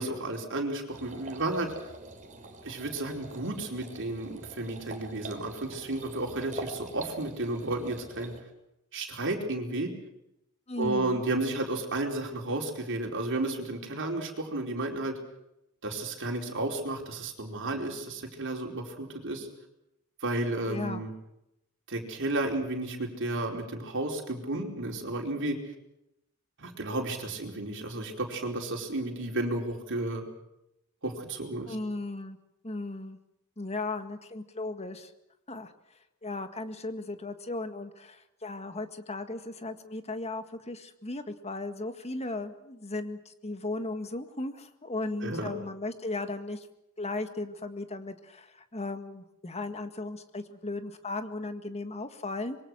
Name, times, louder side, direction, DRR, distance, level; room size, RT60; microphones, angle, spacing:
voice 1, 0.0-1.7 2.6-8.3 8.9-9.9 10.8-15.2 15.8-19.5 20.2-21.1 21.9-25.6 26.6-30.2 31.0-31.7 45.2-45.5, right 2 dB, 60° right, 1 dB, 4.7 m, -32 dB
sound 1, 0.9-8.4, right 2 dB, 35° right, 3.8 m, -45 dB
voice 2, 10.7-11.2 20.7-21.0 31.7-32.4 32.6-33.2 33.6-35.1 35.5-35.7 36.2-46.7 47.0-52.6, left 2 dB, 30° left, 8 dB, 1.8 m, -36 dB
26.0 x 23.0 x 6.4 m, 0.84 s
head